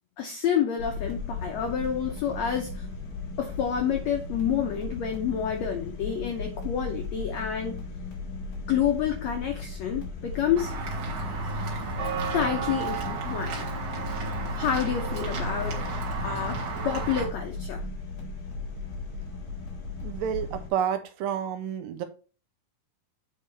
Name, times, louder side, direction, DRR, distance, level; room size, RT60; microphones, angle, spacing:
voice 1, 0.2-2.9 3.4-7.8 8.7-10.8 12.3-13.7 14.6-15.8 16.2-17.8, left 8 dB, 85° left, 4 dB, 1.5 m, -28 dB
sound 1, 0.8-20.7, left 3 dB, 60° left, 4.5 m, -36 dB
Walk footsteps / Bell, 10.6-17.3, right 3 dB, 60° right, 3.0 m, -32 dB
voice 2, 20.0-22.1, right 9 dB, 75° right, 8 dB, 2.3 m, -30 dB
8.4 x 5.2 x 3.3 m, 0.36 s
omnidirectional pair, 4.2 m